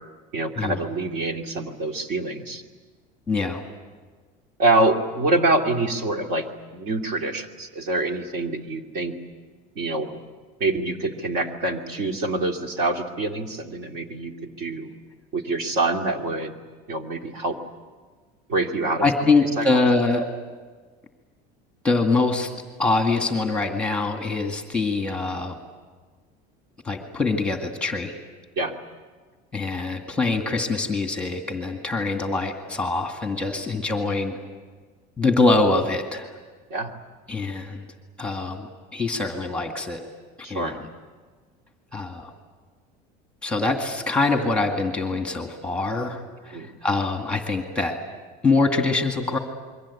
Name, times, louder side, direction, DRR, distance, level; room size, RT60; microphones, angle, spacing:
voice 1, 0.3-2.6 4.6-6.5 6.7-9.1 9.8-10.2 10.6-14.9 15.3-16.6 16.9-17.6 18.5-19.8 28.6-28.7 33.5-33.6 36.7-36.9 40.4-40.8 46.5-46.7, right 2 dB, 50° right, 4 dB, 2.4 m, -25 dB
voice 2, 3.3-3.6 19.0-20.3 21.8-22.5 22.8-25.6 26.8-28.1 29.5-34.4 35.2-36.3 37.3-37.8 38.2-38.7 38.9-40.0 40.5-40.9 41.9-42.3 43.4-48.0 48.4-49.4, left 3 dB, 5° left, 4 dB, 2.0 m, -24 dB
28.0 x 23.0 x 8.5 m, 1.4 s
cardioid pair, 165°, 20 cm